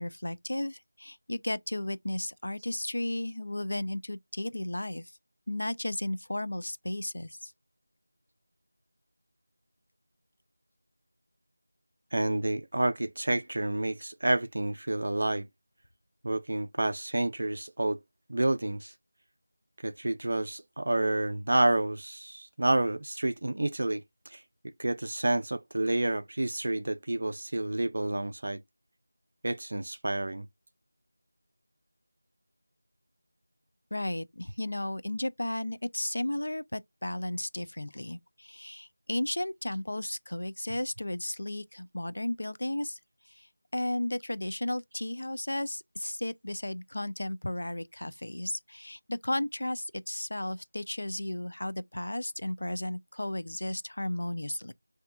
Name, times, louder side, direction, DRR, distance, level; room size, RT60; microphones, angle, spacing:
voice 1, 0.0-5.1 5.5-7.5 33.9-43.0 43.3-54.7, left 1 dB, 70° left, 0.6 m, -34 dB
voice 2, 12.1-15.5 16.2-18.0 18.3-18.9 19.8-24.4 24.8-28.6 29.4-30.5, right 1 dB, 40° right, 0.4 m, -29 dB
5.8 x 2.8 x 2.4 m
figure-of-eight pair, 180°, 0 cm